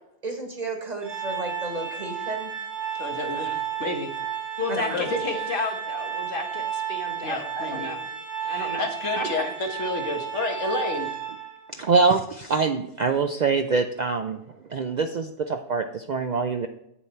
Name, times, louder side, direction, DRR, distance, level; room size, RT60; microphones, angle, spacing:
voice 1, 0.2-2.5 4.7-5.1, right 2 dB, 35° right, 3 dB, 1.4 m, -33 dB
Organ, 1.0-11.7, right 9 dB, 90° right, 1.6 m, -32 dB
voice 2, 3.0-4.1 4.9-5.4 7.2-7.9 8.4-11.1, left 2 dB, 90° left, 3 dB, 1.7 m, -30 dB
voice 3, 4.6-8.1 8.5-8.9 9.2-9.5, left 2 dB, 50° left, 2 dB, 1.7 m, -32 dB
voice 4, 11.7-14.4 14.7-16.7, right 4 dB, 55° right, 6 dB, 0.5 m, -24 dB
8.6 x 7.1 x 4.4 m, 0.79 s
omnidirectional pair, 1.2 m